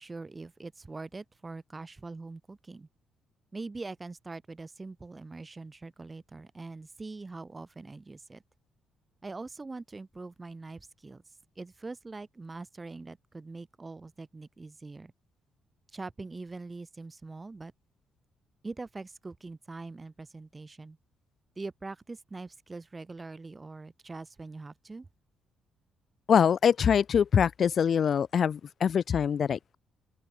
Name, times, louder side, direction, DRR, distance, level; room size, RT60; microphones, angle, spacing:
voice 1, 0.0-2.9 3.5-8.4 9.2-11.2 11.6-15.1 15.9-17.7 18.6-21.0 21.6-25.1, right 3 dB, 25° right, 3.4 m, -43 dB
voice 2, 26.3-29.8, left 7 dB, 55° left, 0.8 m, -24 dB
open air
cardioid pair, 90°, 0 cm